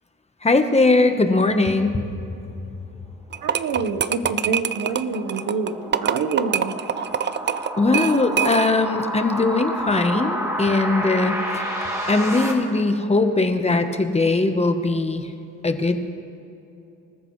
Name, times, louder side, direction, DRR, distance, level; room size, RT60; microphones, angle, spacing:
voice 1, 0.4-2.0 7.8-11.6 12.1-15.3 15.6-16.1, left 3 dB, 20° left, 7 dB, 1.0 m, -20 dB
sound 1, 3.3-8.9, right 8 dB, 35° right, 0.4 m, -25 dB
voice 2, 3.4-5.7 6.0-6.7, right 5 dB, 80° right, 8 dB, 1.2 m, -26 dB
sound 2, 4.2-12.5, equal, 10° right, 2.6 m, -30 dB
26.0 x 13.5 x 3.2 m, 2.9 s
cardioid pair, 110°, 32 cm